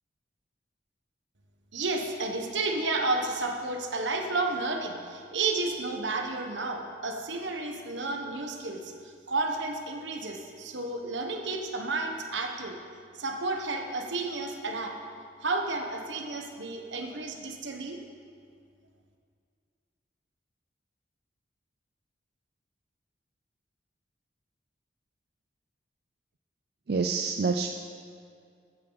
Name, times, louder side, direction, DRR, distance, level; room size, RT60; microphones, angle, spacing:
voice 1, 1.7-8.9 9.3-12.8 13.2-14.9 15.4-18.0, right 3 dB, 80° right, 3 dB, 1.2 m, -31 dB
voice 2, 26.9-27.7, right 4 dB, 55° right, 4 dB, 0.4 m, -27 dB
13.5 x 9.0 x 4.0 m, 2.2 s
head